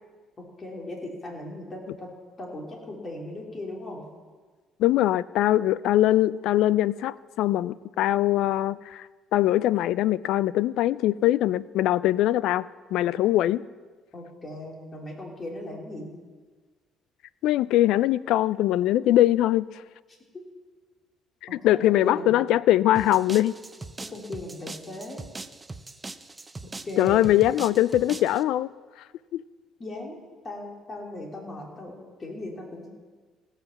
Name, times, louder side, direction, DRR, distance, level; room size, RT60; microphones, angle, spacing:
voice 1, 0.4-2.1 2.4-4.0 14.1-16.1 21.5-22.3 24.0-25.2 26.8-27.3 29.8-30.2 30.4-32.9, left 1 dB, 30° left, -1 dB, 3.1 m, -37 dB
voice 2, 4.8-9.1 9.3-13.7 17.4-19.7 21.6-23.5 27.0-28.7 29.3-29.4, left 14 dB, 80° left, 19 dB, 0.3 m, -22 dB
sound 1, 23.0-28.4, right 3 dB, 20° right, 0.5 m, -40 dB
16.5 x 5.6 x 7.1 m, 1.4 s
cardioid pair, 105°, 0 cm